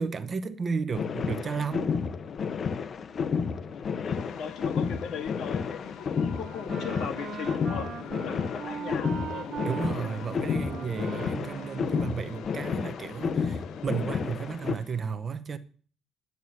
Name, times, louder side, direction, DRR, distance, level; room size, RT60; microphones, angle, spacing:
voice 1, 0.0-1.9 9.6-15.6, right 5 dB, 30° right, 0.8 m, -33 dB
sound 1, 0.9-14.8, left 6 dB, 35° left, 0.7 m, -31 dB
voice 2, 3.7-8.0 8.2-9.6 10.0-10.1, left 7 dB, 55° left, 2.1 m, -39 dB
sound 2, 4.1-15.0, left 9 dB, 80° left, 1.2 m, -50 dB
Wind instrument woodwind instrument, 5.7-12.8, right 8 dB, 45° right, 1.8 m, -41 dB
10.5 x 9.4 x 8.3 m
cardioid pair, 160°, 0 cm